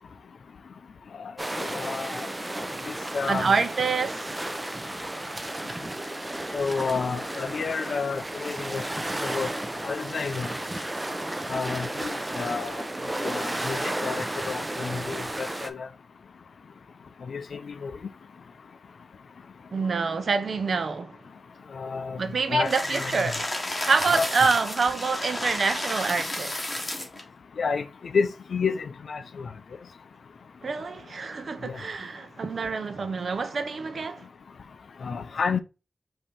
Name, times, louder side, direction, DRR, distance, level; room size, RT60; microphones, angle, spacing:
sound 1, 1.4-15.7, right 1 dB, 20° right, 0.6 m, -33 dB
voice 1, 1.6-2.3 2.9-3.5 6.5-8.8 9.2-9.5 9.8-10.5 11.5-12.8 13.2-15.9 17.3-17.9 21.7-22.2 22.5-23.2 24.1-24.3 27.6-29.5 31.6-31.8 35.0-35.6, left 5 dB, 75° left, 0.4 m, -30 dB
voice 2, 3.3-4.4 19.7-21.2 22.2-23.5 23.8-26.7 30.6-34.3, right 4 dB, 65° right, 0.6 m, -26 dB
sound 2, 22.6-27.2, left 1 dB, 25° left, 1.4 m, -32 dB
5.3 x 2.7 x 3.4 m
cardioid pair, 65°, 0 cm